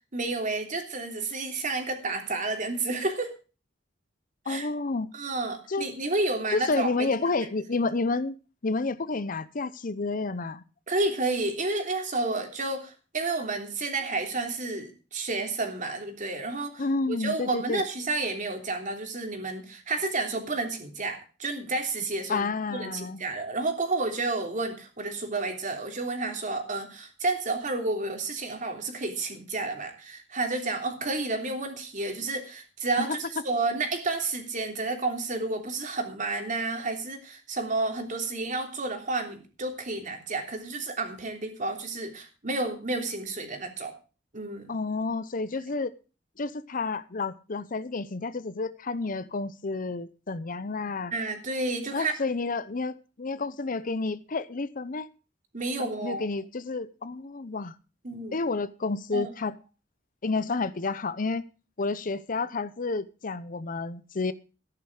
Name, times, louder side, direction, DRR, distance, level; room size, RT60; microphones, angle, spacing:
voice 1, 0.1-3.3 4.5-4.7 5.1-7.1 10.9-43.9 44.3-44.7 51.1-52.1 55.5-56.3 58.0-58.3 59.1-59.3, right 3 dB, 45° right, 3.2 m, -31 dB
voice 2, 4.5-5.1 5.7-5.9 6.5-8.3 8.6-10.6 16.8-17.8 22.3-23.2 33.1-33.2 44.7-45.9 46.4-51.1 51.9-55.1 55.8-57.7 58.3-59.6 60.2-61.4 61.8-64.3, left 3 dB, 45° left, 0.7 m, -30 dB
14.0 x 10.5 x 4.9 m
head